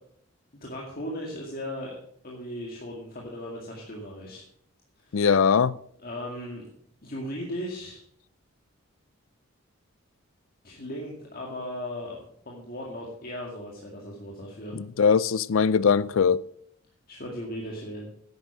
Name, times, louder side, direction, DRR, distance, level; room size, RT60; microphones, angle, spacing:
voice 1, 0.5-2.0 2.2-4.4 5.0-5.3 6.0-6.6 7.0-8.0 10.6-12.2 12.5-14.8 17.1-18.1, equal, 45° left, 2.1 m, -37 dB
voice 2, 5.1-5.8 14.7-16.4, left 6 dB, 70° left, 0.4 m, -21 dB
10.5 x 9.2 x 6.1 m
head